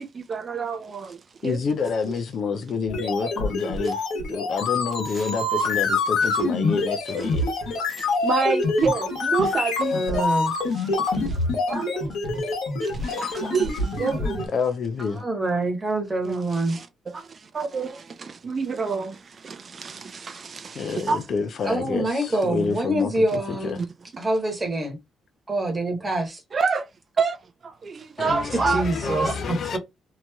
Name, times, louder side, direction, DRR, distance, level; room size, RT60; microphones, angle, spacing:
voice 1, 0.0-1.6 5.1-5.3 7.9-10.2 10.8-10.9 11.3-11.4 11.7-12.1 12.8-14.5 16.2-16.9 17.1-21.3 23.8-23.9 26.5-26.9 27.2-27.4 27.6-29.4, right 5 dB, 40° right, 0.5 m, -28 dB
voice 2, 1.4-4.0 4.3-7.4 9.9-10.0 14.5-15.2 20.7-23.8 28.2-29.8, left 5 dB, 60° left, 0.5 m, -28 dB
sound 1, 2.9-14.5, left 3 dB, 85° left, 1.2 m, -26 dB
voice 3, 9.9-10.5 11.0-11.3 15.2-16.8 21.6-23.8 24.2-25.0 25.5-26.4 28.5-29.8, right 2 dB, 25° right, 1.2 m, -26 dB
3.0 x 2.7 x 2.2 m
cardioid pair, 90°, 0 cm